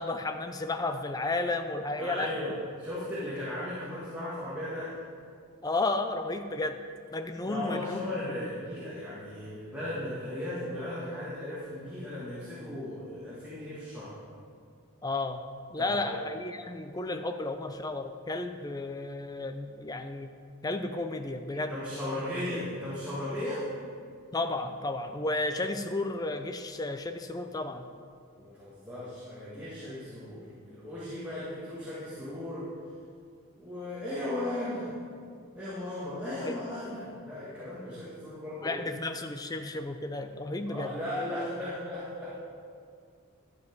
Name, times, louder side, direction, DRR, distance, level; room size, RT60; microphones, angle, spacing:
voice 1, 0.0-2.3 5.6-6.8 7.1-8.5 15.0-20.3 20.6-21.8 24.3-27.9 36.4-36.6 38.6-40.9, left 2 dB, 15° left, 7 dB, 0.4 m, -33 dB
voice 2, 2.0-4.9 7.5-14.2 15.8-16.2 21.5-23.7 28.3-32.7 33.6-34.9 35.5-38.8 40.7-42.3, left 1 dB, 5° right, -10 dB, 1.7 m, -36 dB
11.0 x 7.2 x 4.6 m, 2.2 s
head